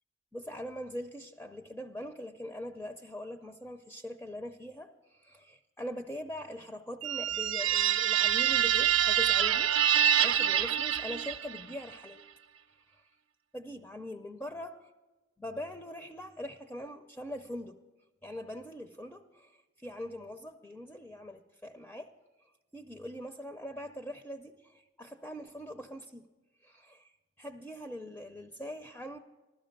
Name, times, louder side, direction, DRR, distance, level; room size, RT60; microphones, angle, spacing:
voice 1, 0.3-12.2 12.9-13.1 13.5-14.7 15.4-17.8 18.2-22.1 22.7-26.3 26.6-27.1 27.4-29.2, left 1 dB, 10° left, 6 dB, 0.4 m, -42 dB
sound 1, 7.0-11.7, right 10 dB, 85° right, 0.5 m, -26 dB
16.0 x 12.5 x 5.2 m, 1.2 s
head